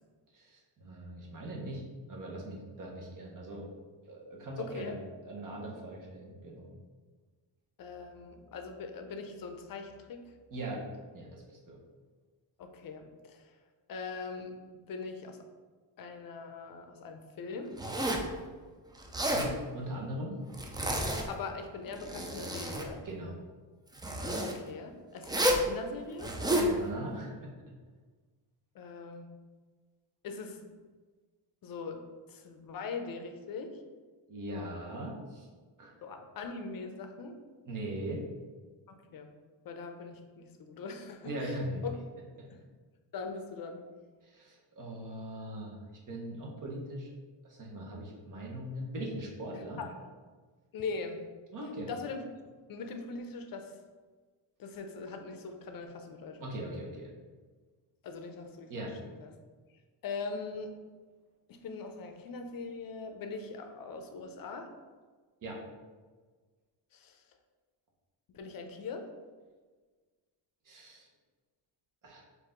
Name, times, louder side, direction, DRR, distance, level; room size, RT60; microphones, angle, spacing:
voice 1, 0.3-1.8 2.1-3.7 4.0-5.0 5.2-6.7 10.5-10.8 11.1-11.8 19.3-20.4 23.0-23.3 26.5-27.5 34.3-35.5 35.8-35.9 37.7-38.2 41.2-41.8 44.3-45.7 46.1-47.1 47.4-49.8 51.5-51.9 56.4-57.1 58.7-58.9 65.4-65.6 70.6-71.0 72.0-72.2, right 1 dB, 45° right, -2 dB, 1.2 m, -40 dB
voice 2, 4.6-5.0 7.8-10.3 12.6-13.5 13.9-14.5 14.9-15.5 16.0-17.7 21.3-23.0 24.4-26.3 28.7-29.3 30.2-30.6 31.6-32.0 32.3-33.8 36.0-37.4 38.9-39.3 39.6-41.6 41.8-42.0 42.5-42.6 43.1-43.8 49.8-49.9 50.7-51.2 51.9-52.2 52.7-53.7 54.6-56.6 58.0-59.3 60.0-60.7 61.5-64.7 66.9-67.2 68.3-69.1, left 4 dB, 50° left, 5 dB, 0.6 m, -41 dB
Zipper (clothing), 17.8-18.3 19.0-19.5 20.5-21.4 21.9-22.9 24.0-24.5 25.2-25.7 26.2-26.7, equal, 10° right, 0.3 m, -30 dB
4.5 x 2.7 x 3.7 m, 1.4 s
cardioid pair, 110°, 46 cm